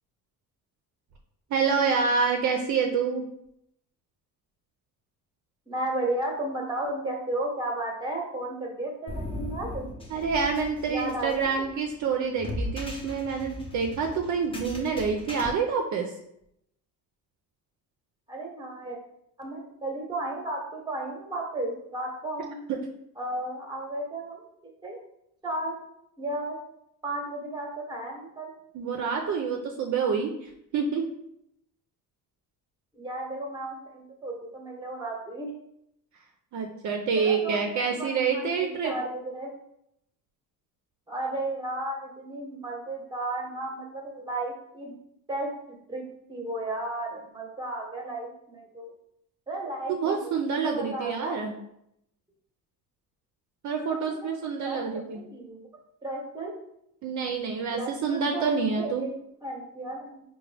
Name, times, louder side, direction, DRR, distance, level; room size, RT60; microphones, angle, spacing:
voice 1, 1.5-3.2 10.1-16.1 28.7-31.0 36.5-39.0 49.9-51.5 53.6-55.2 57.0-59.1, right 5 dB, 55° right, 3 dB, 0.5 m, -27 dB
voice 2, 5.7-9.9 10.9-11.7 18.3-19.0 19.4-22.6 23.2-24.4 24.8-25.0 25.4-25.8 26.2-26.6 27.0-28.5 33.0-35.5 37.1-39.5 41.1-44.9 45.3-48.9 49.5-50.3 50.6-51.3 54.0-54.3 54.6-55.7 56.0-56.5 57.6-59.1 59.4-60.2, right 2 dB, 10° right, 1 dB, 0.9 m, -34 dB
sound 1, 9.1-15.5, left 1 dB, 15° left, 0.6 m, -38 dB
4.7 x 2.2 x 3.3 m, 0.77 s
cardioid pair, 130°, 36 cm